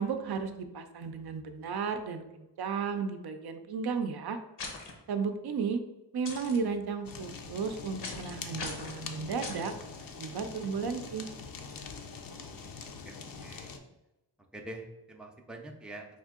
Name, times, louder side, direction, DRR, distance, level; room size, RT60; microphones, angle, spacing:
voice 1, 0.0-4.4 5.1-5.8 6.1-9.7 10.2-11.3, right 5 dB, 60° right, 7 dB, 0.5 m, -34 dB
sound 1, 4.6-4.9 6.2-6.6 8.0-8.3 8.6-9.0 9.4-9.7, left 3 dB, 70° left, 0.9 m, -39 dB
Fire, 7.0-13.8, left 5 dB, 50° left, 0.5 m, -44 dB
voice 2, 12.3-13.8 14.5-16.1, right 1 dB, ahead, 2 dB, 0.4 m, -46 dB
4.3 x 2.6 x 3.6 m, 0.94 s
wide cardioid pair, 130°, 43 cm